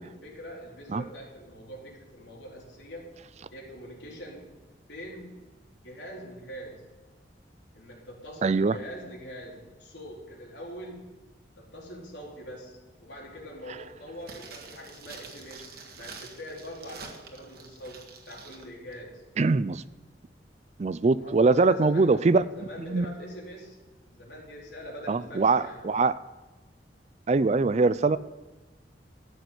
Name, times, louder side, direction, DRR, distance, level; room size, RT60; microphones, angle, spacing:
voice 1, 0.0-3.1 3.5-4.5 4.9-5.4 5.8-6.8 7.7-11.1 11.6-19.2 21.2-23.8 24.0-25.8, equal, 85° left, -2 dB, 4.0 m, -43 dB
voice 2, 8.4-8.8 19.4-19.8 20.8-22.4 22.9-23.1 25.1-26.1 27.3-28.2, right 3 dB, 40° right, 16 dB, 0.4 m, -22 dB
sound 1, 14.2-18.7 18.9-19.0, right 5 dB, 60° right, 1.7 m, -47 dB
14.0 x 6.6 x 8.1 m, 1.2 s
head